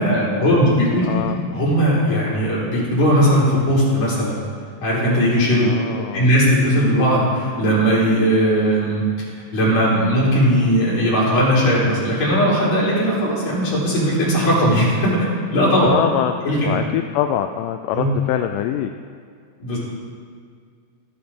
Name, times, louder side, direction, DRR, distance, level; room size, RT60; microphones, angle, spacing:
voice 1, 0.0-4.4 4.8-5.7 6.1-9.0 9.5-15.3 15.5-15.9 16.4-16.6 17.9-18.1 19.6-19.8, equal, 60° left, -8 dB, 5.2 m, -18 dB
voice 2, 1.0-1.4 5.6-6.3 15.8-18.9, left 11 dB, 85° left, 7 dB, 2.2 m, -24 dB
17.5 x 11.5 x 3.7 m, 2.1 s
omnidirectional pair, 3.7 m